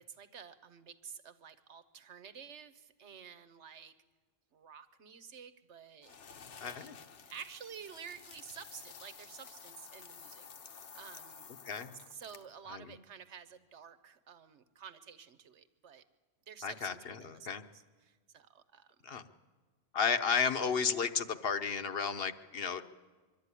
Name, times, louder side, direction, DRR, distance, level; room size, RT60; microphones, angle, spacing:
voice 1, 0.0-4.0 4.5-6.2 6.6-6.9 7.2-11.5 12.1-16.0 16.5-18.9, right 7 dB, 75° right, 13 dB, 1.3 m, -51 dB
sound 1, 6.0-12.6, left 6 dB, 80° left, 1.3 m, -52 dB
voice 2, 6.6-7.0 11.6-12.0 12.7-12.8 16.6-17.6 19.0-19.2 19.9-22.9, left 6 dB, 60° left, 10 dB, 1.1 m, -33 dB
23.5 x 12.5 x 9.8 m, 1.4 s
omnidirectional pair, 1.2 m